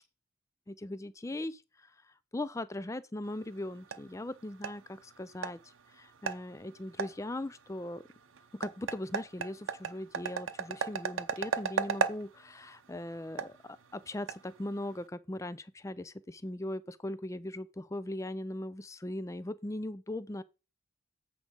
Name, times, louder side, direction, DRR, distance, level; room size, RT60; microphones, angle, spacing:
voice 1, 0.7-1.9 2.3-5.6 5.9-8.0 8.5-20.4, left 1 dB, 15° left, 0.4 m, -39 dB
sound 1, 3.2-15.1, right 5 dB, 90° right, 0.7 m, -38 dB
8.5 x 4.6 x 5.3 m
head